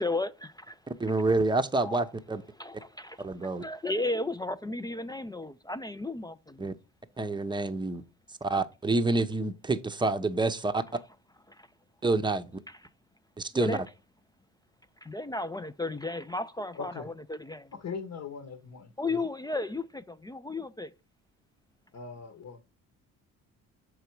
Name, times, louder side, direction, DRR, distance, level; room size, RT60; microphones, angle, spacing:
voice 1, 0.0-0.8 1.8-2.1 2.6-3.3 3.6-6.7 11.5-11.7 12.7-12.8 13.5-13.8 15.0-17.7 19.0-20.9, left 2 dB, 10° left, 0.3 m, -34 dB
voice 2, 0.9-2.4 3.2-3.6 6.6-6.7 7.2-8.0 8.4-10.8 12.0-12.6 13.4-13.8, right 2 dB, 10° right, 0.7 m, -28 dB
voice 3, 16.7-17.1 17.7-19.2 21.9-22.6, left 5 dB, 50° left, 1.1 m, -40 dB
6.7 x 4.6 x 4.5 m
supercardioid pair, 60°, 37 cm